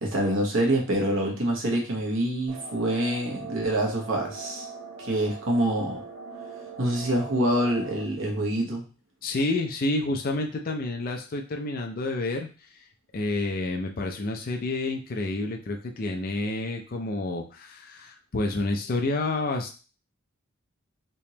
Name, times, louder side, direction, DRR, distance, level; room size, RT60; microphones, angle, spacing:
voice 1, 0.0-4.7 5.0-6.0 6.8-8.8, right 1 dB, 65° right, 0 dB, 1.1 m, -26 dB
sound 1, 2.5-8.0, right 4 dB, 85° right, 0.8 m, -41 dB
voice 2, 9.2-12.8 13.1-19.7, left 2 dB, 45° left, 2 dB, 0.5 m, -29 dB
3.4 x 3.0 x 2.8 m, 0.34 s
head